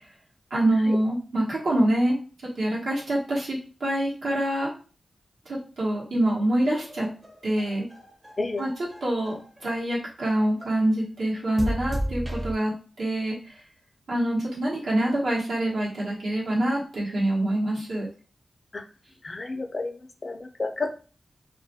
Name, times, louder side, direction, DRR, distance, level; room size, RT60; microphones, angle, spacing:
voice 1, 0.5-2.2 2.6-4.7 5.5-7.1 7.4-7.9 8.6-8.7 9.0-9.4 9.6-12.7 13.0-13.4 14.1-18.1, right 1 dB, 85° right, -5 dB, 0.9 m, -25 dB
sound 1, 6.7-9.7 10.2-10.8 11.6-12.5, equal, 30° right, 0.6 m, -34 dB
voice 2, 19.2-20.9, left 3 dB, 50° left, 5 dB, 0.4 m, -31 dB
2.3 x 2.1 x 2.7 m, 0.38 s
cardioid pair, 50°, 0 cm